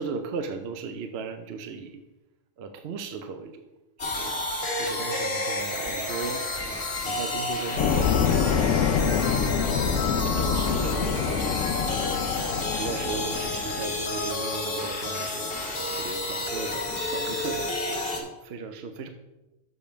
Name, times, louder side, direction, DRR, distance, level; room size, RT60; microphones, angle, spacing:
voice 1, 0.0-2.0 2.6-3.7 4.0-4.4 4.8-6.4 7.0-8.7 9.0-12.1 12.7-15.6 16.0-16.8 17.1-19.1, right 5 dB, 60° right, 7 dB, 0.9 m, -36 dB
sound 1, 4.0-18.2, left 2 dB, 50° left, 1.6 m, -30 dB
sound 2, 7.8-14.1, left 7 dB, 80° left, 0.9 m, -26 dB
6.8 x 5.2 x 5.8 m, 1.0 s
omnidirectional pair, 1.3 m